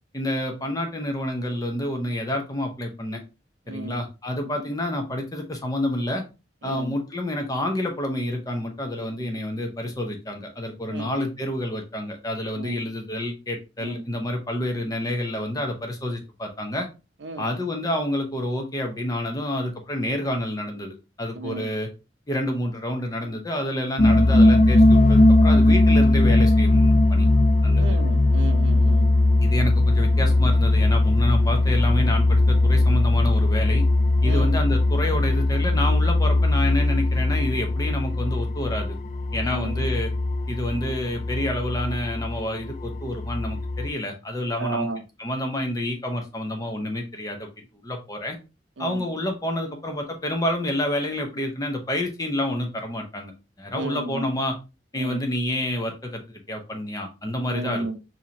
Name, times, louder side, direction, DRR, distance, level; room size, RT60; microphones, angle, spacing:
voice 1, 0.1-3.2 3.7-6.2 6.6-16.9 17.4-21.9 22.3-27.3 27.6-27.8 29.4-33.8 34.2-39.0 39.3-40.1 40.5-44.9 45.2-47.5 47.8-48.4 48.8-53.3 53.6-54.6 54.9-57.8, left 1 dB, 20° left, 0.7 m, -28 dB
voice 2, 3.7-4.0 6.6-7.0 10.9-11.1 12.6-12.8 13.8-14.0 17.2-17.5 21.3-21.7 27.8-29.1 34.2-34.5 39.4-39.8 44.6-45.0 48.8-49.0 53.7-54.2 55.0-55.2 57.5-58.0, right 2 dB, 75° right, 0.6 m, -33 dB
sound 1, 24.0-43.9, left 2 dB, 40° left, 0.3 m, -19 dB
4.7 x 2.8 x 2.7 m
head